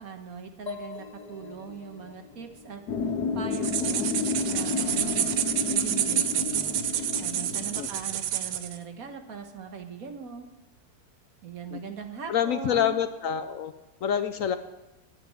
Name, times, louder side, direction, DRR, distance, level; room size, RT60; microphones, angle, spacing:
voice 1, 0.0-2.8 3.3-4.1 4.5-5.4 5.7-10.5 11.4-13.0, right 6 dB, 65° right, 6 dB, 1.6 m, -40 dB
sound 1, 0.7-4.3, left 5 dB, 35° left, 0.8 m, -45 dB
sound 2, 2.9-7.9, left 5 dB, 85° left, 1.5 m, -31 dB
sound 3, 3.5-8.8, right 10 dB, 85° right, 1.3 m, -28 dB
voice 2, 12.3-13.7 14.0-14.6, left 9 dB, 65° left, 10 dB, 0.9 m, -26 dB
10.0 x 8.9 x 9.3 m, 1.1 s
omnidirectional pair, 1.7 m